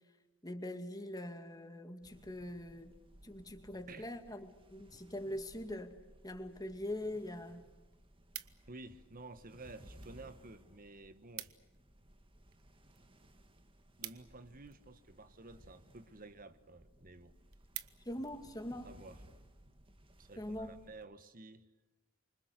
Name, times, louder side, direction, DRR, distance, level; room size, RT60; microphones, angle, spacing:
voice 1, 0.4-3.0 3.2-5.9 6.2-7.6 18.1-18.9 20.4-20.8, left 1 dB, 20° left, 6 dB, 2.3 m, -43 dB
sound 1, 2.0-21.1, right 1 dB, 25° right, 1.8 m, -61 dB
sound 2, 7.8-8.9 9.6-10.2 10.5-10.6 10.8-10.9 11.2-11.8 12.1-15.0 15.7-16.0 16.5-16.6 17.0-17.1 17.4-18.4 18.8-19.1, right 14 dB, 85° right, 1.2 m, -49 dB
voice 2, 8.7-11.5 14.0-17.3 18.8-19.2 19.6-19.9 20.2-21.6, right 2 dB, 40° right, 12 dB, 1.5 m, -52 dB
28.0 x 25.0 x 6.7 m, 1.1 s
head